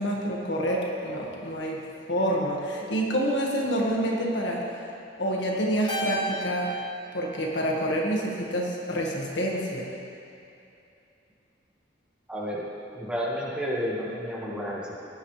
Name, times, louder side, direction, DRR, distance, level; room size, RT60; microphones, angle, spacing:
voice 1, 0.0-1.8 2.1-4.6 5.2-6.7 7.1-9.9, equal, 70° left, -2 dB, 1.9 m, -27 dB
Keyboard (musical), 5.9-8.4, right 2 dB, 25° left, 1.9 m, -34 dB
voice 2, 12.3-12.6 12.9-15.1, equal, 5° right, -6 dB, 1.8 m, -31 dB
18.0 x 10.0 x 3.4 m, 2.7 s
head